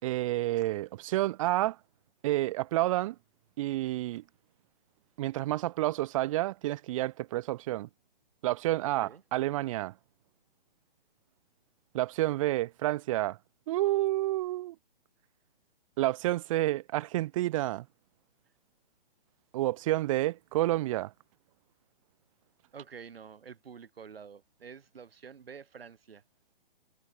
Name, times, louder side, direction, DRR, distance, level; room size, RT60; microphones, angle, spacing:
voice 1, 0.0-1.8 2.2-3.2 3.6-4.2 5.2-7.9 8.4-9.9 11.9-13.4 13.7-14.8 16.0-17.9 19.5-21.1, right 16 dB, 35° right, 1.9 m, -29 dB
voice 2, 22.7-26.2, right 6 dB, 75° right, 7.8 m, -48 dB
hypercardioid pair, 155°, 30 cm